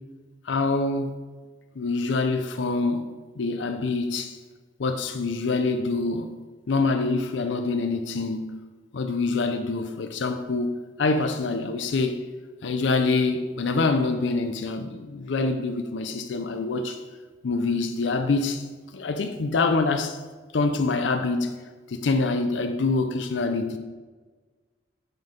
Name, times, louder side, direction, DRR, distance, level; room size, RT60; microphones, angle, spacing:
voice 1, 0.5-1.1 1.8-3.1 3.4-4.4 4.8-6.3 6.7-8.6 8.9-12.2 12.6-17.0 17.4-18.6 18.9-20.2 20.5-21.6 21.9-23.8, left 3 dB, 70° left, 0.5 m, -25 dB
5.9 x 5.3 x 5.1 m
head